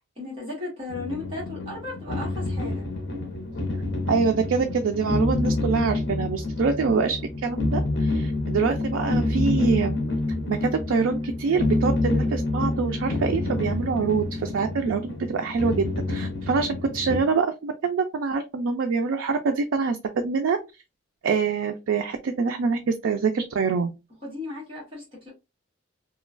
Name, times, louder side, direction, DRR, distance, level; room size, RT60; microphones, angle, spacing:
voice 1, 0.2-2.9 24.2-25.3, left 2 dB, 25° right, 1.2 m, -35 dB
sound 1, 0.9-17.2, left 2 dB, 60° left, 0.7 m, -28 dB
voice 2, 4.1-10.0 10.5-20.6 21.2-23.9, right 5 dB, 80° right, 0.3 m, -25 dB
3.0 x 2.2 x 2.4 m
head